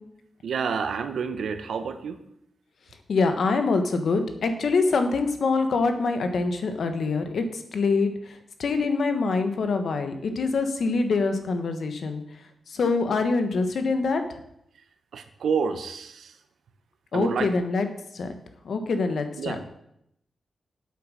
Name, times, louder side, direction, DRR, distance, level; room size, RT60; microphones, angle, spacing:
voice 1, 0.4-2.2 15.1-16.3 17.1-17.5 19.4-19.6, right 6 dB, 85° right, 9 dB, 1.0 m, -29 dB
voice 2, 3.1-12.2 12.7-14.2 17.1-17.9 18.1-18.4 18.6-19.6, left 4 dB, 60° left, 7 dB, 1.2 m, -25 dB
8.5 x 8.0 x 6.3 m, 0.76 s
wide cardioid pair, 180°, 0 cm